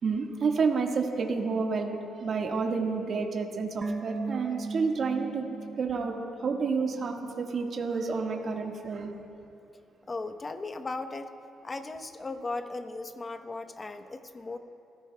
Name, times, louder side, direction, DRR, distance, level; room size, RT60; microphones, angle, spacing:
voice 1, 0.0-5.5 5.8-9.1, right 4 dB, 55° right, 1 dB, 1.7 m, -29 dB
sound 1, 3.8-7.1 7.4-7.5, right 3 dB, 35° right, 1.0 m, -38 dB
voice 2, 10.1-11.3 11.6-14.6, left 3 dB, 30° left, 8 dB, 1.0 m, -37 dB
29.5 x 15.5 x 2.3 m, 2.6 s
cardioid pair, 90°, 0 cm